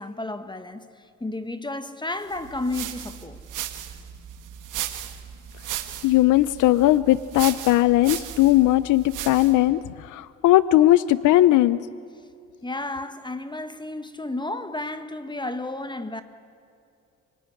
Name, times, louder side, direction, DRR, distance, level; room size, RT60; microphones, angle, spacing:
voice 1, 0.0-3.4 12.6-16.2, left 2 dB, 15° left, 1.5 m, -32 dB
sound 1, 2.3-9.7, right 11 dB, 90° right, 1.8 m, -36 dB
voice 2, 6.0-9.8 10.1-11.8, left 15 dB, 90° left, 0.7 m, -18 dB
28.5 x 19.5 x 9.8 m
cardioid pair, 90°, 30 cm